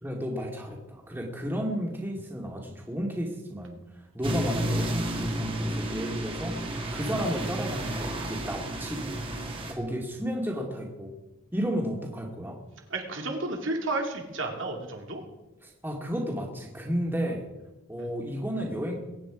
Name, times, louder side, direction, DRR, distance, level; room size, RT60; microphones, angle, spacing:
voice 1, 0.0-3.7 4.1-6.6 6.9-9.2 9.7-11.1 11.5-12.6 15.6-17.5 17.9-19.0, equal, 10° right, 0 dB, 2.2 m, -32 dB
sound 1, 4.2-9.7, right 1 dB, 25° right, 2.1 m, -31 dB
voice 2, 12.9-15.2 18.0-18.1, right 2 dB, 70° right, 2 dB, 2.6 m, -32 dB
22.5 x 9.7 x 5.0 m, 1.0 s
head